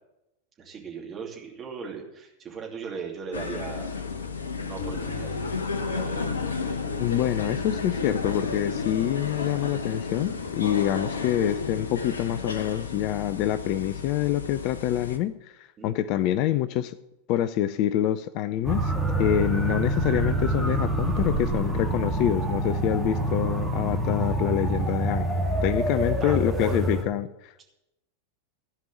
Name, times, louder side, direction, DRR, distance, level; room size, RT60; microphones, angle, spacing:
voice 1, 0.6-3.9 4.6-5.4 5.8-6.3 15.8-15.9 26.2-26.8, right 5 dB, 25° right, -1 dB, 2.8 m, -38 dB
sound 1, 3.3-15.2, left 4 dB, 70° left, 0.9 m, -32 dB
voice 2, 7.0-17.0 17.3-18.9 19.2-25.3 25.6-27.6, left 12 dB, 40° left, 15 dB, 0.5 m, -26 dB
sound 2, 18.6-27.0, right 1 dB, ahead, 2.3 m, -26 dB
15.5 x 5.3 x 9.1 m, 0.90 s
figure-of-eight pair, 90°, 0 cm